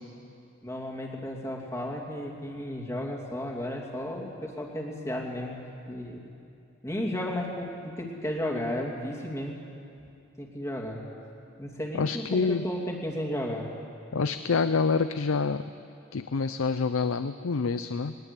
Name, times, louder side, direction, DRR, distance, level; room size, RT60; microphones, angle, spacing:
voice 1, 0.6-6.3 6.8-9.6 10.4-11.0 11.6-13.7, left 1 dB, 15° left, -1 dB, 2.6 m, -33 dB
voice 2, 11.9-12.6 14.1-15.6 16.1-18.2, left 4 dB, 85° left, 11 dB, 0.6 m, -27 dB
21.0 x 20.5 x 8.3 m, 2.5 s
head